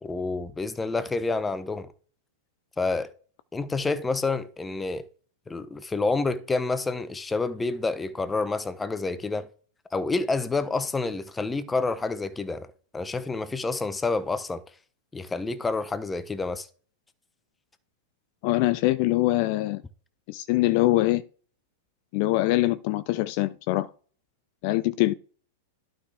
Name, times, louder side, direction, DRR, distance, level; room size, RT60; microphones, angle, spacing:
voice 1, 0.0-1.9 2.8-3.1 3.5-5.1 5.5-9.5 9.9-12.7 12.9-14.6 15.1-16.7, left 3 dB, 10° left, 0.8 m, -28 dB
voice 2, 18.4-19.8 20.3-21.2 22.1-23.9 24.6-25.1, left 17 dB, 50° left, 0.4 m, -23 dB
11.5 x 5.1 x 3.4 m
figure-of-eight pair, 100°, 0 cm